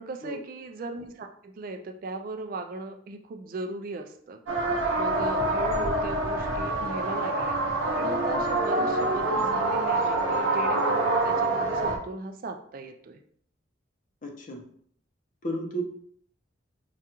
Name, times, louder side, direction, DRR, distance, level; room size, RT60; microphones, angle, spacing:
voice 1, 0.0-4.4 4.9-7.6 8.0-13.2, right 3 dB, 45° right, 6 dB, 0.3 m, -37 dB
sound 1, 4.5-12.0, right 2 dB, 90° right, 0.6 m, -26 dB
voice 2, 14.2-14.6 15.4-15.8, right 1 dB, 40° left, 1 dB, 0.7 m, -33 dB
4.8 x 2.3 x 2.8 m, 0.64 s
head